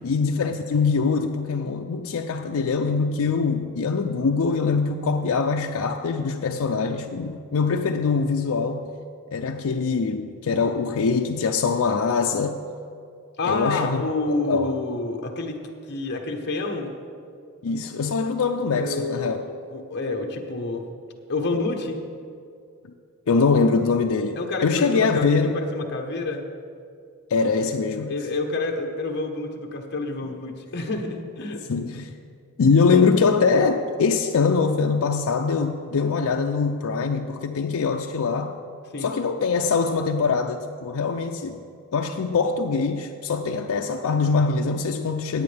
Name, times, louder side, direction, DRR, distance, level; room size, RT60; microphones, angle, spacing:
voice 1, 0.0-8.9 9.3-12.6 13.4-14.8 17.6-19.4 23.3-25.6 27.3-28.1 31.7-32.1 32.6-38.5 39.0-41.6 41.9-45.4, left 4 dB, 70° left, 3 dB, 0.4 m, -23 dB
voice 2, 13.4-15.6 15.9-16.9 18.7-20.8 21.3-22.0 24.4-26.4 28.1-31.6 38.9-39.1, left 2 dB, 50° left, 2 dB, 1.0 m, -28 dB
16.5 x 8.6 x 3.3 m, 2.4 s
head